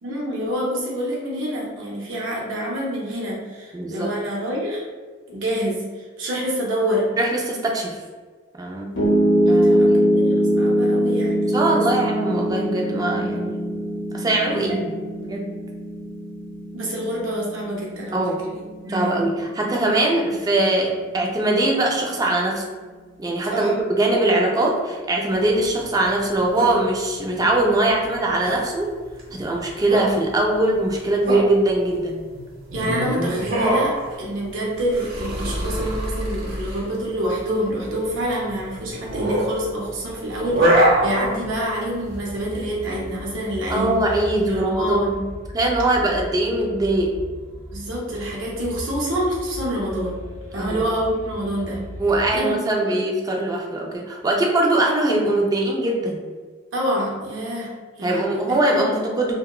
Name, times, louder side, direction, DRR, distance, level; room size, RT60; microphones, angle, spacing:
voice 1, 0.0-4.8 5.3-7.1 9.5-12.0 16.7-18.2 18.8-19.3 23.5-23.7 32.7-43.9 44.5-45.1 47.7-50.2 50.5-51.8 52.3-53.0 56.7-58.9, equal, 75° right, -4 dB, 0.6 m, -27 dB
voice 2, 3.7-4.1 7.2-8.0 8.6-8.9 9.5-10.2 11.5-13.7 14.1-14.9 15.2-15.5 18.1-18.4 18.9-22.6 23.2-28.9 29.3-32.2 43.7-45.2 45.5-47.1 50.5-50.8 52.0-56.2 58.0-59.3, right 2 dB, 20° right, -1 dB, 0.3 m, -21 dB
Piano, 9.0-21.1, equal, 65° left, 0.6 m, -22 dB
Sonidos de quejidos cansancio esfuerzo y demas, 25.3-44.6, right 1 dB, 55° right, 0.9 m, -25 dB
sound 1, 42.0-52.4, equal, 10° left, 0.8 m, -37 dB
2.8 x 2.1 x 2.2 m, 1.4 s
head